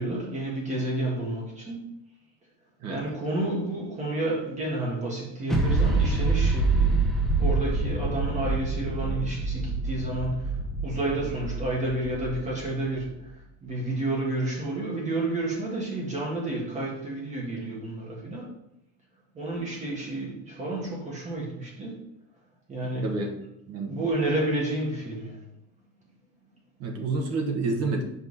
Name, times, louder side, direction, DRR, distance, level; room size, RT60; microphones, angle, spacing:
voice 1, 0.0-1.9 2.9-7.0 7.4-18.5 19.3-22.0 22.7-23.1 23.9-25.4, right 2 dB, 20° right, -3 dB, 1.7 m, -30 dB
sound 1, 5.5-13.0, right 3 dB, ahead, 0.7 m, -26 dB
voice 2, 23.0-23.3 23.7-24.0 26.8-28.0, right 3 dB, 40° right, 2 dB, 1.2 m, -28 dB
7.2 x 5.5 x 4.1 m, 0.82 s
cardioid pair, 180°, 37 cm